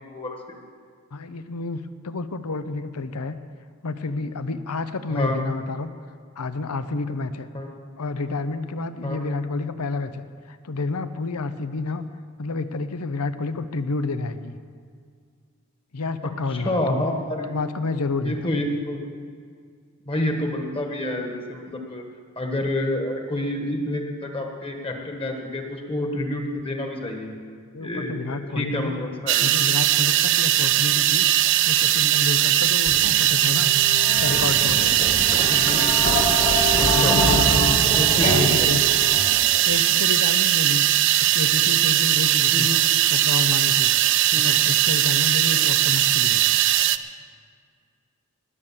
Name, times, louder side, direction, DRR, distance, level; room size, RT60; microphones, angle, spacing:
voice 1, 0.0-0.6 5.1-5.4 7.5-7.7 9.0-9.2 16.5-17.5 18.2-19.1 20.0-22.0 22.4-27.3 27.8-29.5 32.9-33.0 35.5-35.8 36.9-37.2 37.9-38.7 42.5-42.8 44.3-44.5 45.6-45.7, left 1 dB, 25° left, 3 dB, 1.4 m, -28 dB
voice 2, 1.1-3.4 3.8-5.9 6.4-7.5 8.0-12.0 12.4-14.6 15.9-17.0 17.5-18.6 27.7-29.0 29.4-31.3 31.7-33.7 34.2-35.0 36.8-37.8 38.1-39.1 39.6-40.8 41.2-42.7 43.1-43.9 44.4-46.5, left 3 dB, 90° left, 12 dB, 0.7 m, -29 dB
sound 1, 29.3-47.0, right 13 dB, 55° right, 0.4 m, -20 dB
sound 2, 32.9-39.6, left 1 dB, 45° left, 2.2 m, -26 dB
19.5 x 6.7 x 7.4 m, 2.1 s
head